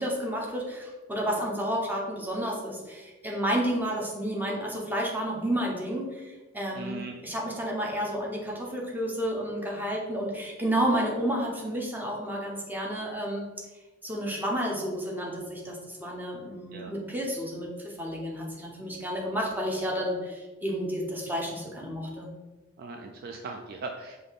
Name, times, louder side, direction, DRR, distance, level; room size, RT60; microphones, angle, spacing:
voice 1, 0.0-13.5 14.0-22.3, equal, 10° right, -2 dB, 0.9 m, -31 dB
voice 2, 6.7-7.1 16.7-16.9 22.8-24.2, right 3 dB, 50° right, 3 dB, 0.3 m, -39 dB
5.1 x 2.7 x 3.9 m, 1.2 s
head